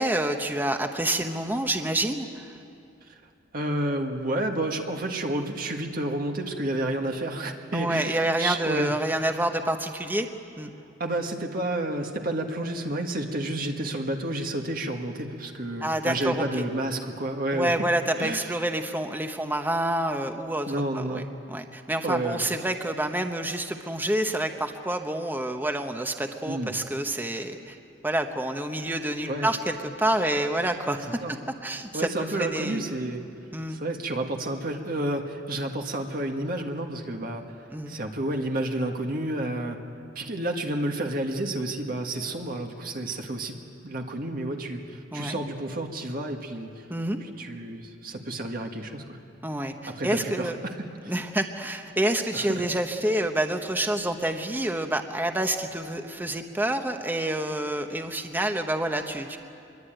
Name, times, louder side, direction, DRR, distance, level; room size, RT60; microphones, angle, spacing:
voice 1, 0.0-2.5 7.7-10.3 10.6-10.7 15.8-16.4 17.5-20.7 20.9-21.2 21.5-27.8 28.0-31.1 31.6-32.8 33.5-33.8 37.7-38.0 45.1-45.4 46.9-47.2 49.4-50.6 51.1-59.4, right 1 dB, 10° right, 6 dB, 1.0 m, -28 dB
voice 2, 3.5-9.0 11.0-17.8 18.2-18.5 20.7-21.2 22.0-22.4 26.4-26.7 29.3-29.5 31.0-31.4 31.9-33.2 33.7-37.4 37.9-39.8 40.1-43.5 43.8-46.9 47.2-49.2 49.9-51.1 52.3-52.6, right 1 dB, 50° right, 3 dB, 1.7 m, -30 dB
24.5 x 22.0 x 9.1 m, 2.5 s
head